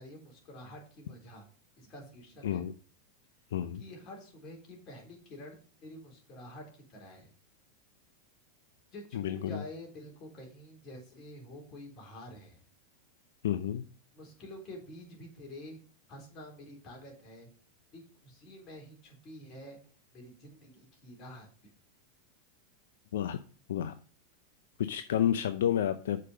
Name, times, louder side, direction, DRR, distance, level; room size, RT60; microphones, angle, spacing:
voice 1, 0.0-1.5 1.8-2.6 3.8-7.3 8.9-12.6 14.1-15.8 16.1-17.5 17.9-19.8 20.1-21.7, left 1 dB, 40° left, 0 dB, 3.7 m, -48 dB
voice 2, 3.5-3.8 9.1-9.6 13.4-13.9 23.1-23.4 23.7-24.0 24.8-26.2, left 10 dB, 80° left, 11 dB, 0.5 m, -30 dB
6.6 x 5.1 x 6.3 m, 0.40 s
hypercardioid pair, 115°, 0 cm